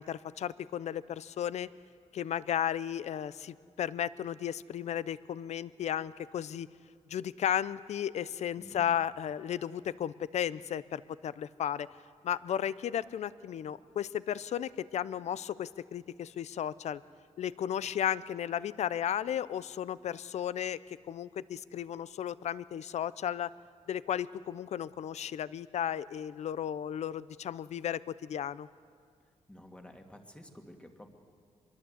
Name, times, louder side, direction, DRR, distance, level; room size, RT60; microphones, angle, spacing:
voice 1, 0.0-1.7 2.1-6.7 7.1-11.9 12.2-17.0 17.4-20.8 21.1-23.5 23.9-28.7, left 10 dB, 65° left, 18 dB, 0.6 m, -34 dB
voice 2, 8.6-9.0 29.5-31.1, left 1 dB, 10° left, 4 dB, 2.1 m, -51 dB
24.5 x 22.0 x 8.0 m, 2.2 s
wide cardioid pair, 135°, 12 cm